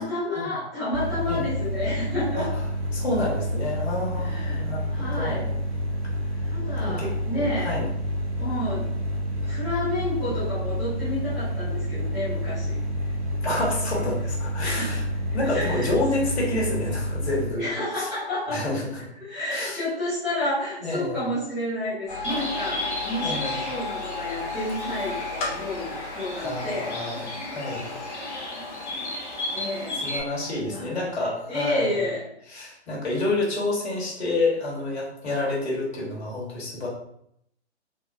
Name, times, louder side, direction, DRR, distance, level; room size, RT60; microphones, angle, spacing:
voice 1, 0.0-2.5 4.1-5.5 6.4-7.8 8.4-8.9 9.4-12.8 13.8-14.1 14.6-15.0 15.4-15.9 17.6-18.7 19.2-27.3 28.5-28.7 29.5-30.1 30.6-31.0 31.5-32.3, left 1 dB, ahead, -18 dB, 0.3 m, -30 dB
sound 1, 0.9-17.4, equal, 65° right, 1.2 m, -29 dB
voice 2, 2.9-5.5 6.8-7.9 13.4-15.0 15.3-17.7 18.0-18.1 18.5-18.8 19.5-19.8 20.8-21.3 23.2-23.6 26.4-27.3 27.5-27.9 30.0-32.0 32.5-36.9, left 2 dB, 70° left, -5 dB, 1.5 m, -28 dB
sound 2, 22.1-31.7, left 3 dB, 35° left, 0.8 m, -36 dB
Bird, 22.2-30.2, left 1 dB, 85° left, 1.2 m, -34 dB
3.7 x 2.2 x 2.6 m, 0.74 s
figure-of-eight pair, 125°, 33 cm